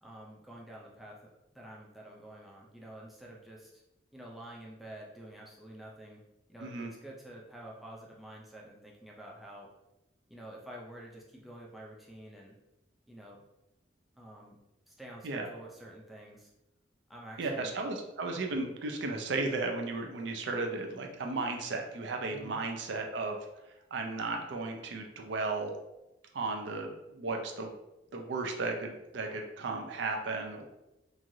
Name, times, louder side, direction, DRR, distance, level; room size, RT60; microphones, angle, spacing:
voice 1, 0.0-3.8 4.1-6.2 6.5-9.7 10.3-12.6 13.1-13.4 14.1-14.6 14.9-16.5 17.1-17.8 22.3-22.6, right 1 dB, ahead, -3 dB, 0.4 m, -49 dB
voice 2, 6.6-6.9 15.2-15.5 17.4-23.4 23.9-25.8 26.3-27.7 28.1-30.6, right 3 dB, 65° right, 3 dB, 0.5 m, -35 dB
3.1 x 2.3 x 2.6 m, 0.92 s
head